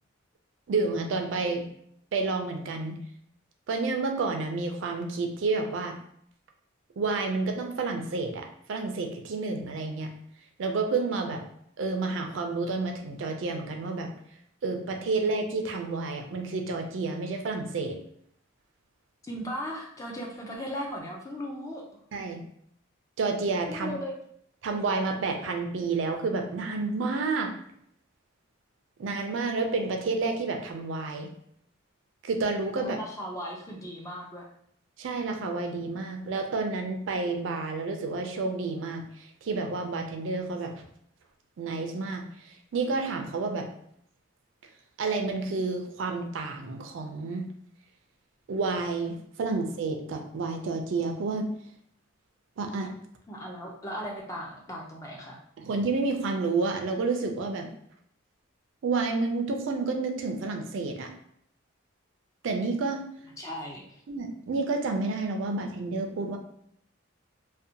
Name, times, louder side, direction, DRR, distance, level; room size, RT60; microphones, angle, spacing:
voice 1, 0.7-1.7 2.1-3.0 3.7-6.0 7.0-10.1 10.6-11.4 11.8-14.1 14.6-18.0 22.1-22.4 23.2-23.9 24.6-27.6 29.0-31.3 32.2-33.0 35.0-40.8 41.6-43.7 45.0-47.5 48.5-51.5 52.6-52.9 55.6-57.7 58.8-61.1 62.4-63.0 64.1-66.4, right 3 dB, 65° right, 4 dB, 0.3 m, -30 dB
voice 2, 19.2-21.8 23.7-24.2 32.7-34.4 53.3-55.4 63.4-64.0, equal, 15° left, -1 dB, 0.3 m, -37 dB
2.5 x 2.1 x 2.6 m, 0.68 s
head